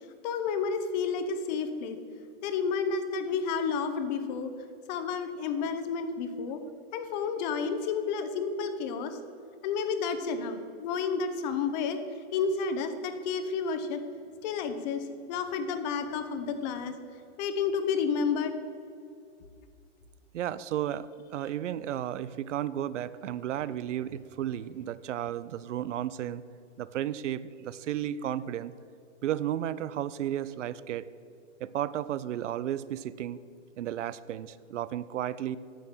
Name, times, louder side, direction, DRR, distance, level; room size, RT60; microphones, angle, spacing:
voice 1, 0.2-2.0 2.4-4.5 4.9-6.6 6.9-9.2 9.6-12.0 12.3-14.0 14.4-16.9 17.4-18.5, left 5 dB, 35° left, 9 dB, 0.9 m, -31 dB
voice 2, 20.3-26.4 26.8-28.7 29.2-31.1 31.6-33.4 33.8-35.6, right 11 dB, 85° right, 17 dB, 0.6 m, -33 dB
9.2 x 6.9 x 6.2 m, 2.4 s
hypercardioid pair, 145°, 36 cm